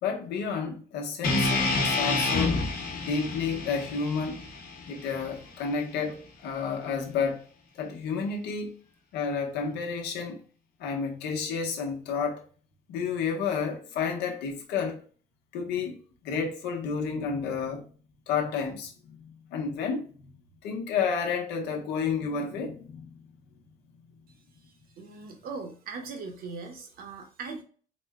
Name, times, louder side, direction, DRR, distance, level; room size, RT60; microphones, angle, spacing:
voice 1, 0.0-2.6 3.1-4.4 4.9-7.4 7.8-8.8 9.1-10.4 10.8-12.4 12.9-15.0 15.5-16.0 16.2-17.8 18.3-20.3 20.6-23.2, left 5 dB, 85° left, 1.0 m, -31 dB
sound 1, 1.2-5.4, left 3 dB, 60° left, 1.2 m, -28 dB
voice 2, 25.0-27.6, right 4 dB, 60° right, 1.0 m, -39 dB
4.1 x 2.2 x 3.5 m
cardioid pair, 110°, 17 cm